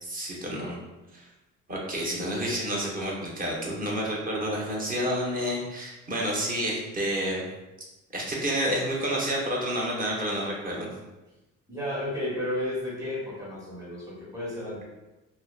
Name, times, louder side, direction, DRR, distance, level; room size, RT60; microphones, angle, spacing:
voice 1, 0.0-0.8 1.1-1.3 1.7-7.5 8.1-10.9, equal, 30° right, -3 dB, 0.7 m, -29 dB
voice 2, 11.7-14.8, left 1 dB, 10° right, -5 dB, 1.1 m, -32 dB
2.7 x 2.1 x 2.3 m, 1.0 s
cardioid pair, 90°, 30 cm